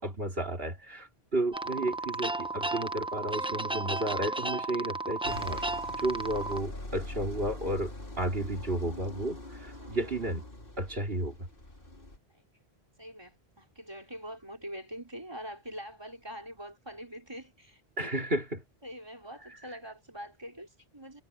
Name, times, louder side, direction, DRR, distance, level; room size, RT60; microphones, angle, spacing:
voice 1, 0.0-5.6 6.0-10.4 10.8-11.5 18.0-18.6, right 1 dB, 65° right, 3.4 m, -32 dB
sound 1, 1.5-6.6, right 2 dB, 5° right, 0.5 m, -34 dB
sound 2, 5.2-12.2, left 1 dB, 60° left, 3.7 m, -43 dB
voice 2, 9.8-10.3 12.3-12.4 13.0-17.8 18.2-18.3 18.8-21.2, equal, 25° right, 4.7 m, -44 dB
omnidirectional pair, 1.1 m